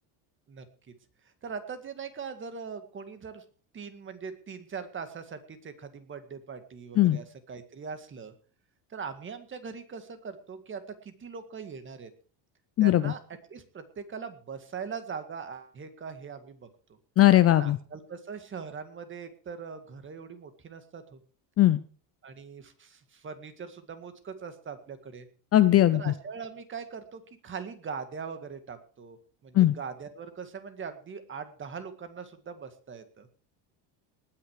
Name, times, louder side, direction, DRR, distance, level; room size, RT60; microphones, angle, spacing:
voice 1, 1.4-3.4 3.7-8.3 8.9-12.1 12.8-13.2 13.5-16.7 17.5-21.2 22.2-25.3 25.9-29.2 29.4-33.3, right 6 dB, 25° right, 9 dB, 2.0 m, -41 dB
voice 2, 12.8-13.1 17.2-17.8 21.6-21.8 25.5-26.1 29.5-29.7, left 14 dB, 30° left, 13 dB, 0.6 m, -19 dB
19.5 x 9.9 x 4.9 m, 0.40 s
cardioid pair, 155°, 46 cm